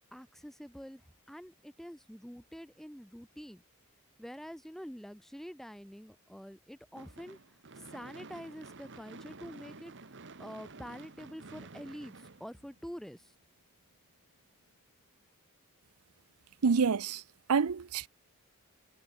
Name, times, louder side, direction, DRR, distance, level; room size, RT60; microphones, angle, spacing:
voice 1, 0.1-3.6 4.2-13.3, equal, ahead, 1.2 m, -47 dB
Gunshot gunfire / Fireworks, 7.0-13.2, right 3 dB, 55° right, 1.6 m, -51 dB
voice 2, 16.6-17.2 17.5-18.1, right 5 dB, 85° right, 0.6 m, -27 dB
head